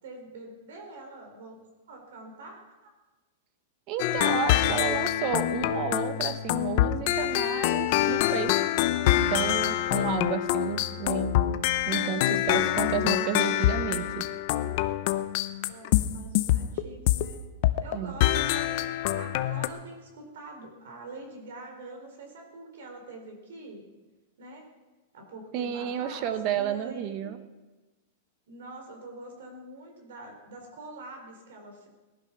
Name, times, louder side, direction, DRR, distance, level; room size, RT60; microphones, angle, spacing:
voice 1, 0.0-1.6 1.9-2.9 15.6-17.4 17.8-18.8 19.1-23.9 24.4-24.7 25.1-27.3 28.5-31.9, right 2 dB, 70° right, 3 dB, 4.1 m, -45 dB
voice 2, 3.9-8.6 9.3-11.4 11.9-14.3 17.9-18.1 25.5-27.4, right 9 dB, 30° right, 11 dB, 1.0 m, -31 dB
sound 1, 4.0-17.3 17.6-18.0 18.2-19.7, left 13 dB, 40° left, 0.7 m, -25 dB
18.5 x 11.5 x 6.0 m, 1.2 s
supercardioid pair, 170°, 0 cm